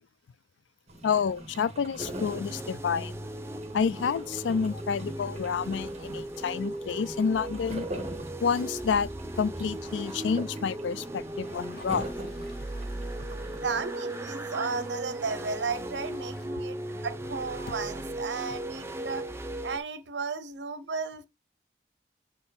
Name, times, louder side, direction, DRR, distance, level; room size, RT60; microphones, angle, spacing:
sound 1, 0.9-13.8, right 1 dB, 35° right, 1.4 m, -43 dB
voice 1, 1.0-3.2 3.7-7.9 8.4-9.1 9.4-12.1, left 6 dB, 85° left, 0.4 m, -29 dB
sound 2, 2.0-19.8, right 1 dB, 15° right, 0.5 m, -37 dB
Toilet flush, 11.6-16.5, left 3 dB, 55° left, 0.8 m, -56 dB
voice 2, 13.5-19.3 19.6-21.3, right 4 dB, 75° right, 0.7 m, -34 dB
6.8 x 4.3 x 3.5 m
head